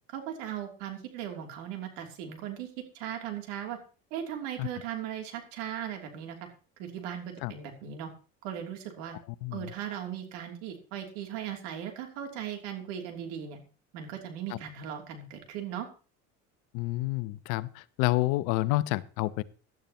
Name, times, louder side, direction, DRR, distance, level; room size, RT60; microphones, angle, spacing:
voice 1, 0.1-3.8 4.1-6.4 6.8-8.1 8.4-9.2 9.5-13.6 13.9-15.9, right 9 dB, 80° right, 3 dB, 3.1 m, -38 dB
voice 2, 16.7-17.7 18.0-19.4, left 19 dB, 75° left, 17 dB, 0.8 m, -28 dB
17.0 x 12.0 x 3.0 m, 0.37 s
supercardioid pair, 85°, 35 cm